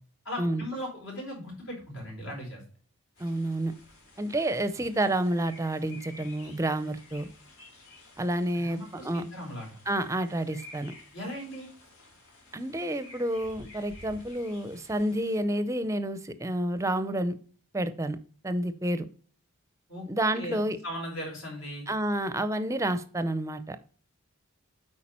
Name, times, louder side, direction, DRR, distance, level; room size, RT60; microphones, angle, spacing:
voice 1, 0.2-2.6 8.5-9.7 11.1-11.7 19.9-20.1 20.3-20.6 20.8-21.9, equal, 70° left, 4.3 m, -38 dB
sound 1, 3.2-15.4, left 2 dB, 90° left, 3.4 m, -52 dB
voice 2, 3.2-3.7 4.2-7.3 8.2-9.3 9.9-10.9 12.5-17.4 17.7-18.2 18.4-19.1 20.1-20.8 21.9-23.8, right 1 dB, 15° right, 0.5 m, -29 dB
8.5 x 4.8 x 4.3 m
head